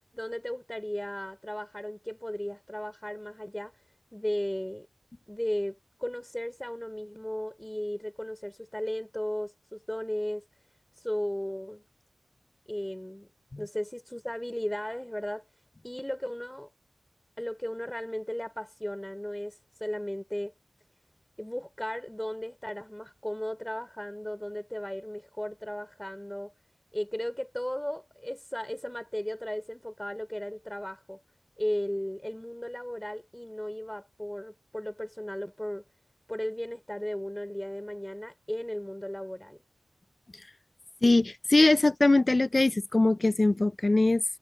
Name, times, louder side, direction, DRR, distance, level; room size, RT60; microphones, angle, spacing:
voice 1, 0.1-3.8 4.1-4.9 5.3-10.4 11.0-11.9 12.7-13.3 13.6-15.4 15.8-16.7 17.4-20.5 21.4-26.5 26.9-31.2 31.6-35.8 36.3-39.6, equal, 10° left, 3.9 m, -35 dB
voice 2, 41.0-44.2, left 2 dB, 35° left, 0.4 m, -22 dB
wide cardioid pair, 80°, 0 cm